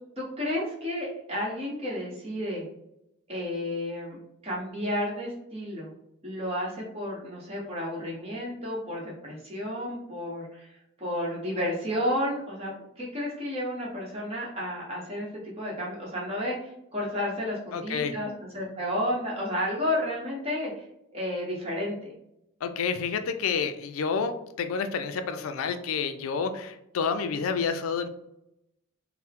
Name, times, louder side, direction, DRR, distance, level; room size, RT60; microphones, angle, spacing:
voice 1, 0.2-2.6 3.3-4.2 4.4-5.9 6.2-20.8 21.1-22.1, left 1 dB, 30° right, -5 dB, 1.2 m, -32 dB
voice 2, 17.7-18.1 22.6-28.1, left 5 dB, 90° left, 8 dB, 0.4 m, -29 dB
4.3 x 2.1 x 3.6 m, 0.83 s
head